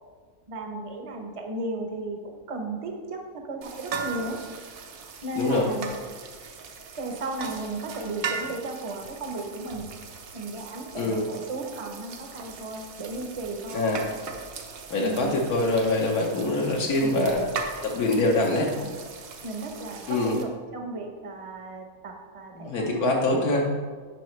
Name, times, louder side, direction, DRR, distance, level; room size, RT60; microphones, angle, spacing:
voice 1, 0.5-4.4 5.2-5.9 7.0-9.8 10.3-13.8 15.0-15.3 17.0-17.3 18.5-18.9 19.4-23.1, right 2 dB, 30° right, 3 dB, 0.6 m, -35 dB
sound 1, 3.6-20.4, right 5 dB, 70° right, 1.2 m, -39 dB
voice 2, 5.4-5.7 11.0-11.3 13.7-14.1 14.9-17.4 17.8-18.7 20.1-20.4 22.6-23.7, left 2 dB, 80° left, -1 dB, 1.4 m, -24 dB
9.3 x 5.6 x 3.2 m, 1.5 s
omnidirectional pair, 1.6 m